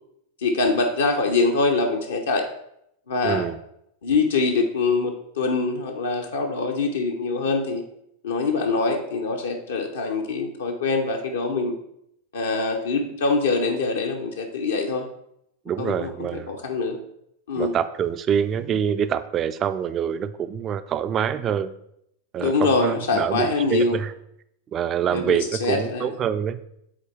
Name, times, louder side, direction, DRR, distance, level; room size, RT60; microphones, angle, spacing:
voice 1, 0.4-2.5 3.1-3.4 4.0-7.8 8.2-11.7 12.3-15.1 15.8-17.0 17.5-17.8 22.4-24.0 25.1-26.1, left 3 dB, 65° left, 3 dB, 0.6 m, -24 dB
voice 2, 3.2-3.6 15.7-16.5 17.6-21.7 22.3-24.1 24.7-26.6, right 8 dB, 30° right, 13 dB, 0.3 m, -25 dB
7.1 x 4.0 x 3.2 m, 0.77 s
figure-of-eight pair, 90°, 0 cm